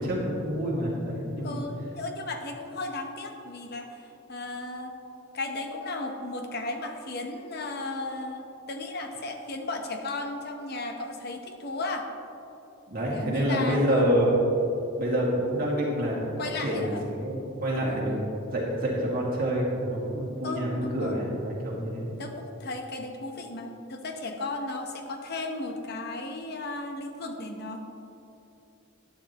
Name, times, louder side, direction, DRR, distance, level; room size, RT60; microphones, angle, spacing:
voice 1, 0.0-1.6 12.9-14.3 15.0-18.2 18.5-22.1, equal, 45° right, -5 dB, 2.2 m, -27 dB
voice 2, 1.4-5.0 5.3-12.1 13.1-14.1 16.4-17.1 17.9-18.0 20.4-21.2 22.2-27.8, left 2 dB, 50° left, 4 dB, 0.9 m, -35 dB
11.5 x 9.9 x 3.0 m, 2.9 s
head